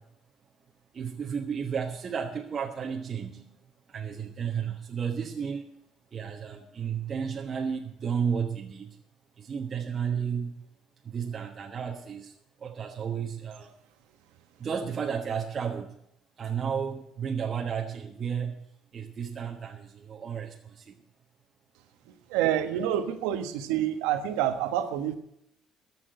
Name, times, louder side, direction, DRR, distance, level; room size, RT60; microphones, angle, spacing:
voice 1, 0.9-3.6 3.9-5.6 6.1-8.9 9.4-10.5 11.0-12.3 12.6-13.7 14.6-15.9 16.4-18.6 18.9-21.0, right 7 dB, 40° right, 1 dB, 1.2 m, -32 dB
voice 2, 22.3-25.2, right 11 dB, 90° right, 8 dB, 1.2 m, -27 dB
14.0 x 6.2 x 8.9 m, 0.79 s
supercardioid pair, 85°, 0 cm